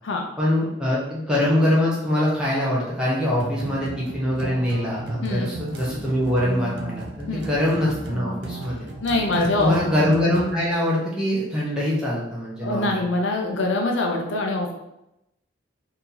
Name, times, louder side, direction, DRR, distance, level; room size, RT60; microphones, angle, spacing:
voice 1, 0.4-8.8 9.3-13.0, left 1 dB, 5° right, -7 dB, 0.9 m, -23 dB
sound 1, 3.3-10.5, right 2 dB, 60° right, 0.5 m, -34 dB
voice 2, 9.0-9.8 12.6-14.7, left 2 dB, 75° left, 1 dB, 0.6 m, -24 dB
2.9 x 2.8 x 3.8 m, 0.87 s
head